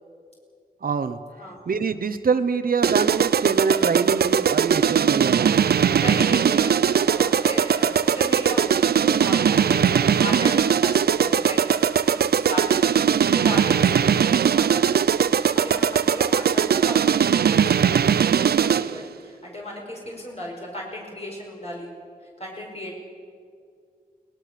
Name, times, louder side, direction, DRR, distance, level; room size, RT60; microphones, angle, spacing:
voice 1, 0.8-1.2 1.7-5.5, right 5 dB, 65° right, 11 dB, 0.9 m, -25 dB
sound 1, 2.8-19.0, right 8 dB, 85° right, 0.5 m, -20 dB
voice 2, 6.0-12.2 12.5-18.1 18.4-21.9 22.4-23.0, equal, 40° left, -2 dB, 4.9 m, -35 dB
22.5 x 18.5 x 6.7 m, 2.2 s
cardioid pair, 55°, 16 cm